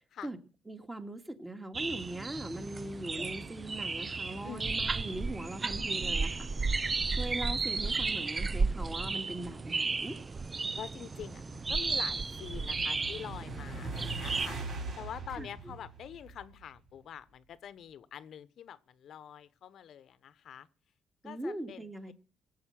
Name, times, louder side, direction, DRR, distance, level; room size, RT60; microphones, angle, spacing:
voice 1, 0.7-6.5 7.1-10.2 15.4-15.5 21.2-22.1, right 1 dB, 15° right, 6 dB, 2.3 m, -40 dB
sound 1, 1.7-14.5, right 4 dB, 30° right, 0.6 m, -34 dB
voice 2, 10.7-20.7 21.2-22.1, left 9 dB, 70° left, 15 dB, 0.9 m, -46 dB
sound 2, 11.7-16.8, right 3 dB, 60° right, 5.3 m, -42 dB
18.5 x 7.8 x 7.5 m, 0.39 s
cardioid pair, 90°, 0 cm